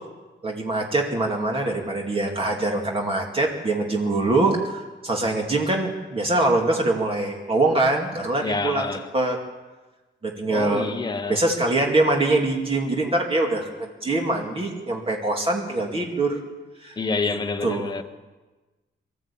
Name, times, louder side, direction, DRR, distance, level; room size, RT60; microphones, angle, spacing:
voice 1, 0.4-9.4 10.2-10.9 11.3-16.4 16.8-17.0 17.2-17.4 17.6-17.9, right 2 dB, 30° right, 2.5 m, -23 dB
voice 2, 8.4-9.0 10.5-11.4 17.0-18.0, left 4 dB, 20° left, 1.2 m, -27 dB
24.0 x 13.5 x 8.7 m
wide cardioid pair, 165°, 19 cm